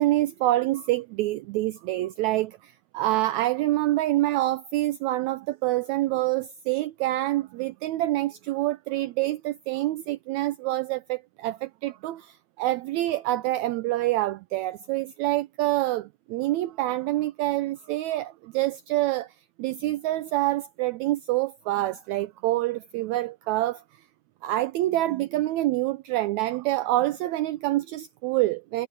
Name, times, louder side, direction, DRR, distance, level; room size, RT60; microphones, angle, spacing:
voice 1, 0.0-19.3 19.6-23.8 24.4-28.9, right 16 dB, 85° right, 1.6 m, -26 dB
omnidirectional pair, 3.8 m